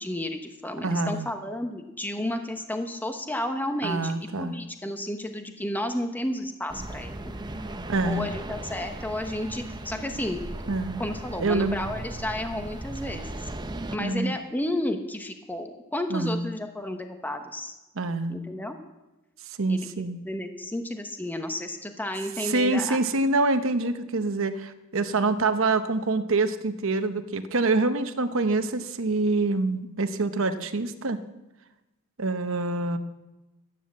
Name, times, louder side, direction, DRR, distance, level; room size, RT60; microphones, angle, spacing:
voice 1, 0.0-7.3 8.0-10.4 11.0-13.3 13.9-17.7 18.3-18.8 19.7-23.0, left 1 dB, 10° left, 6 dB, 1.0 m, -32 dB
voice 2, 0.8-1.3 3.8-4.6 7.9-8.3 10.7-11.0 11.4-11.8 14.0-14.3 16.1-16.4 18.0-18.4 19.6-20.2 22.4-31.2 32.2-33.0, right 3 dB, 65° right, 9 dB, 1.0 m, -26 dB
sound 1, 6.7-14.0, right 1 dB, 20° right, 0.7 m, -37 dB
12.5 x 9.8 x 7.5 m, 1.0 s
head